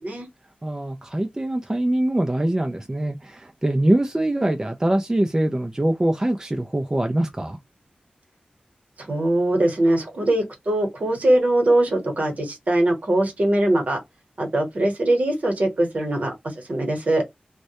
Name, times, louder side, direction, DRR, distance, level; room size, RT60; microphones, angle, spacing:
voice 1, 0.6-7.6, right 1 dB, 20° right, 0.3 m, -23 dB
voice 2, 9.0-14.0 14.4-17.2, right 1 dB, 55° right, 1.0 m, -21 dB
2.2 x 2.0 x 2.8 m
wide cardioid pair, 80°, 3 cm